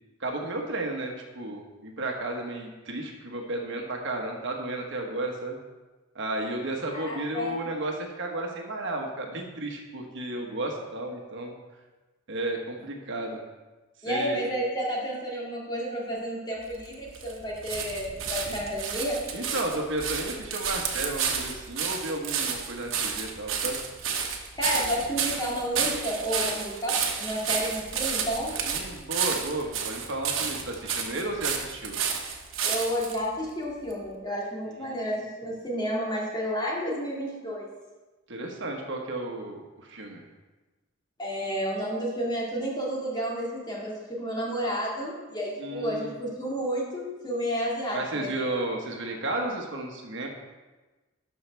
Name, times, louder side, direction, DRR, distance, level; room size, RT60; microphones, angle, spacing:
voice 1, 0.2-5.6 6.1-11.6 12.3-13.4 14.1-14.4 18.5-18.6 19.3-23.8 24.8-24.9 28.6-32.0 34.8-35.0 38.3-40.2 45.6-46.1 47.9-50.3, right 2 dB, 65° right, 1 dB, 1.3 m, -33 dB
voice 2, 6.9-7.5 14.0-19.2 24.6-28.5 32.6-37.7 41.2-48.3, equal, 20° left, -4 dB, 2.0 m, -31 dB
sound 1, 16.6-33.2 33.9-34.0, right 6 dB, 90° right, 1.0 m, -31 dB
12.0 x 5.6 x 3.4 m, 1.2 s
head